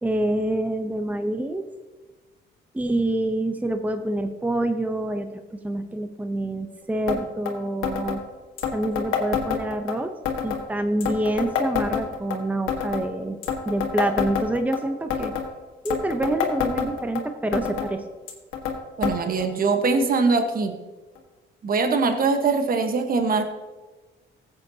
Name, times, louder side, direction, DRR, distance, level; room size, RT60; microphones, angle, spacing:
voice 1, 0.0-1.6 2.7-8.2 8.7-10.1 10.4-13.4 13.7-15.3 15.8-18.0, right 1 dB, 10° right, 7 dB, 0.8 m, -26 dB
sound 1, 7.1-7.2 7.5-7.6 7.8-8.2 8.6-9.9 10.3-10.6 11.0-12.4 12.7-13.1 13.4-14.8 15.1-15.5 15.9-17.2 17.5-17.9 18.3-18.8 19.0-19.2 19.4-19.5 20.3-20.4 21.2-21.3, left 7 dB, 80° left, 1.7 m, -27 dB
voice 2, 19.0-20.8 21.6-23.4, right 4 dB, 45° right, 6 dB, 1.2 m, -22 dB
15.5 x 8.0 x 2.8 m, 1.3 s
cardioid pair, 90°, 20 cm